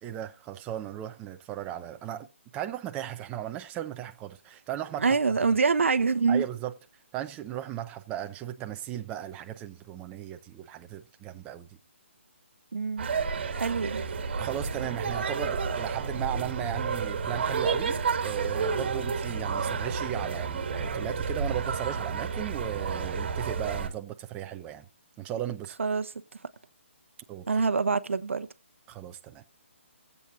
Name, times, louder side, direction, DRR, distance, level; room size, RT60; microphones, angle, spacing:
voice 1, 0.0-2.3 2.5-5.2 6.3-6.7 7.1-11.7 14.4-24.9 25.2-25.8 27.3-27.5 28.9-29.4, right 12 dB, 15° right, 0.6 m, -36 dB
voice 2, 5.0-6.5 12.7-13.1 13.5-14.0 25.8-26.1 27.5-28.5, right 4 dB, 70° right, 0.8 m, -25 dB
sound 1, 13.0-23.9, right 5 dB, 55° right, 1.6 m, -31 dB
18.0 x 8.3 x 2.6 m
figure-of-eight pair, 145°, 7 cm